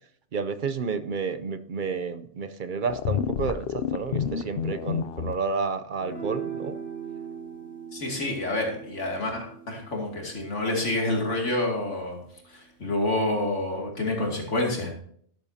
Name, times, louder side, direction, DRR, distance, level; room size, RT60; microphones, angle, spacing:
voice 1, 0.3-6.8, right 5 dB, 50° right, 11 dB, 0.7 m, -30 dB
sound 1, 2.9-5.3, left 8 dB, 60° left, 0.8 m, -29 dB
sound 2, 6.0-12.5, right 7 dB, 70° right, 4.4 m, -41 dB
voice 2, 7.9-12.2 12.5-14.9, left 2 dB, 85° left, 0 dB, 2.9 m, -28 dB
12.0 x 12.0 x 2.8 m, 0.62 s
omnidirectional pair, 1.2 m